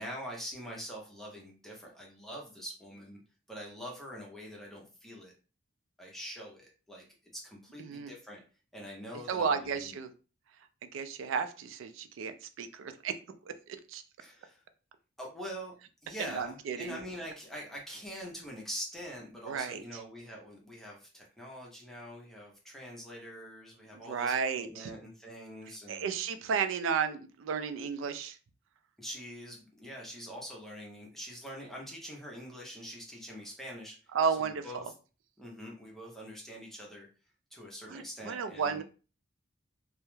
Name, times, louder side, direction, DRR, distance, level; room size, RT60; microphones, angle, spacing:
voice 1, 0.0-3.2 3.5-5.3 6.0-8.4 8.7-10.0 14.2-14.6 15.2-15.7 16.0-26.1 29.0-34.0 34.4-34.8 35.4-37.1 37.5-38.8, equal, ahead, -2 dB, 0.6 m, -44 dB
voice 2, 7.8-8.1 9.3-10.1 10.9-13.1 13.9-14.0 16.3-17.0 19.5-19.8 24.0-24.9 25.9-28.4 34.1-34.6 37.9-38.8, right 6 dB, 85° right, 10 dB, 0.3 m, -33 dB
2.2 x 2.0 x 3.0 m, 0.35 s
head